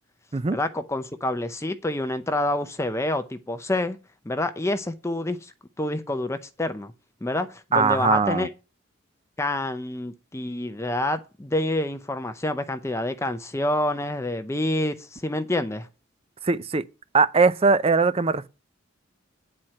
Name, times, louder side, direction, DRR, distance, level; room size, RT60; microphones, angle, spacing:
voice 1, 0.5-4.0 4.3-6.9 7.2-8.5 9.4-15.9, left 1 dB, 15° left, 0.6 m, -27 dB
voice 2, 7.7-8.5 16.4-16.8 17.1-18.5, right 4 dB, 30° right, 0.5 m, -20 dB
9.6 x 4.3 x 7.5 m
head